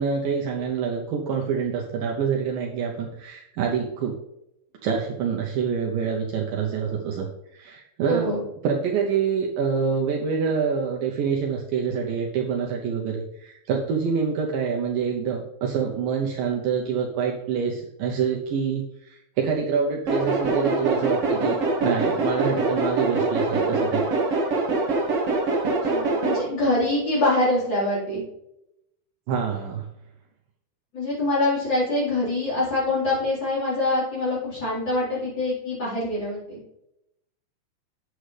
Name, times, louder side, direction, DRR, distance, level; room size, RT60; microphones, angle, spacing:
voice 1, 0.0-4.2 4.8-8.3 8.6-24.0 29.3-29.9, right 6 dB, 90° right, 0 dB, 1.9 m, -26 dB
voice 2, 8.0-8.4 25.9-28.2 30.9-36.6, left 2 dB, 25° left, -8 dB, 4.2 m, -24 dB
sound 1, 20.1-26.4, right 3 dB, 55° right, 1.6 m, -24 dB
9.9 x 7.6 x 3.3 m, 0.82 s
omnidirectional pair, 5.2 m